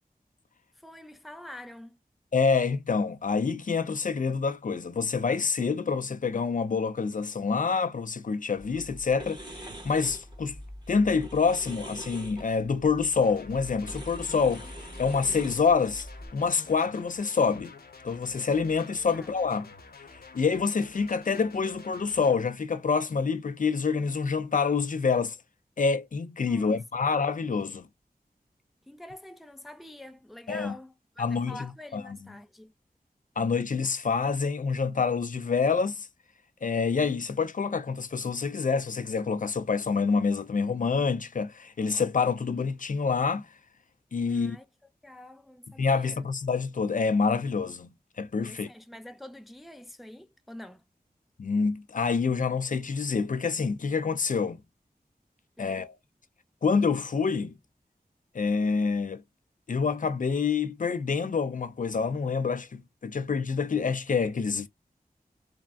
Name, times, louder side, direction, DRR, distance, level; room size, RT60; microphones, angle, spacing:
voice 1, 0.8-2.0 19.1-19.3 26.5-27.1 28.9-32.7 44.3-44.7 45.0-46.3 48.4-50.8 55.6-55.9, left 1 dB, ahead, 0.4 m, -46 dB
voice 2, 2.3-10.6 10.9-14.7 15.0-16.1 16.3-17.7 18.0-19.7 20.3-25.4 25.8-27.9 30.5-30.7 31.2-32.2 33.4-36.1 36.6-43.5 44.1-44.6 45.8-47.9 48.2-48.7 51.4-54.6 55.6-56.0 56.6-57.6 58.3-59.2 59.7-64.7, left 5 dB, 55° left, 0.4 m, -27 dB
sound 1, 8.6-16.3, equal, 30° right, 1.0 m, -43 dB
sound 2, 13.2-22.4, left 4 dB, 80° left, 0.8 m, -49 dB
3.5 x 2.1 x 2.2 m
wide cardioid pair, 75°, 16 cm